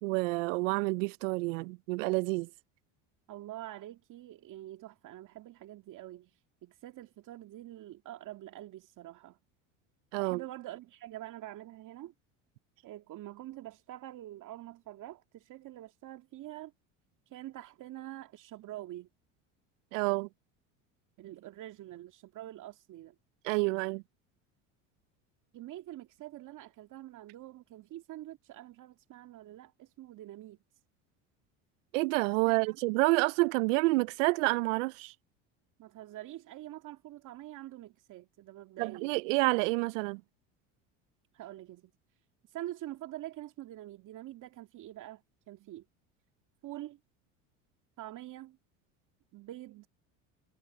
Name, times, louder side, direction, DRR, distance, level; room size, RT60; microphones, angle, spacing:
voice 1, 0.0-2.5 10.1-10.4 19.9-20.3 23.4-24.0 31.9-35.1 38.8-40.2, right 26 dB, 85° right, 0.5 m, -28 dB
voice 2, 3.3-9.4 10.2-12.1 12.8-16.7 17.3-19.1 21.2-23.1 25.5-30.6 32.4-32.8 35.8-39.1 41.3-41.9 42.5-45.8 46.6-47.0 48.0-48.6 49.3-49.9, right 14 dB, 55° right, 2.2 m, -46 dB
supercardioid pair, 95°, 38 cm